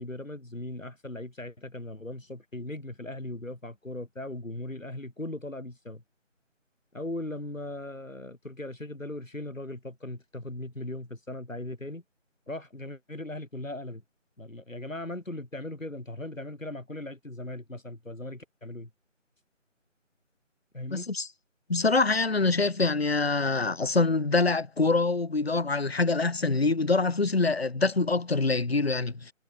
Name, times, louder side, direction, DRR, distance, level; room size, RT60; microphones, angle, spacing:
voice 1, 0.0-6.0 6.9-12.0 12.5-14.0 14.4-18.9 20.7-21.1, left 1 dB, 80° left, 4.3 m, -38 dB
voice 2, 20.9-21.3 21.7-29.3, left 3 dB, 50° left, 1.2 m, -25 dB
figure-of-eight pair, 165°, 39 cm